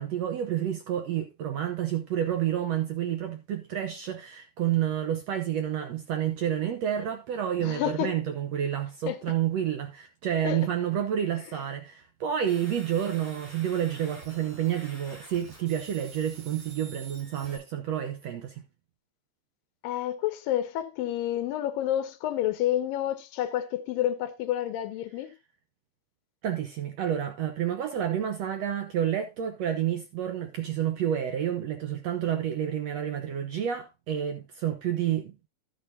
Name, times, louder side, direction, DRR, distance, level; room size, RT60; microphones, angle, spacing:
voice 1, 0.0-18.5 26.4-35.3, right 10 dB, 70° right, 1.6 m, -29 dB
voice 2, 7.6-8.1 9.1-9.2 10.4-10.6 19.8-25.3, left 12 dB, 85° left, 2.6 m, -29 dB
sound 1, 12.5-17.6, right 2 dB, 50° right, 8.9 m, -48 dB
12.0 x 8.4 x 2.7 m
omnidirectional pair, 3.9 m